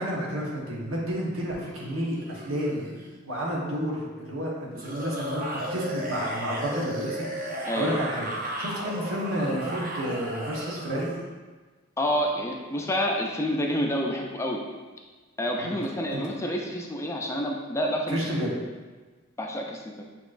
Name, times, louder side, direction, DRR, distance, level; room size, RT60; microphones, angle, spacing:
voice 1, 0.0-2.8 3.3-8.3 8.6-11.1 15.6-15.7 16.1-16.2 18.1-18.5, equal, 85° right, -4 dB, 1.1 m, -30 dB
sound 1, 1.5-3.2 4.7-11.3, right 1 dB, 45° right, 0.6 m, -35 dB
voice 2, 7.6-8.0 12.0-14.6 15.4-18.2 19.4-20.0, equal, 15° left, 0 dB, 0.4 m, -28 dB
7.0 x 3.0 x 2.5 m, 1.3 s
head